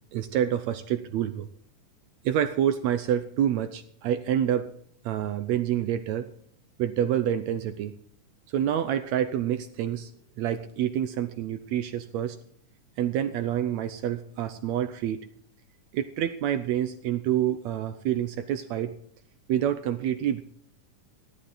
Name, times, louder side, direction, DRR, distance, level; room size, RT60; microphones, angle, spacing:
voice 1, 0.1-1.5 2.2-4.7 5.1-6.3 6.8-7.9 8.5-10.1 10.4-12.4 13.0-15.2 15.9-18.9 19.5-20.4, right 10 dB, 75° right, 10 dB, 1.8 m, -27 dB
15.5 x 13.0 x 3.9 m, 0.64 s
omnidirectional pair, 3.6 m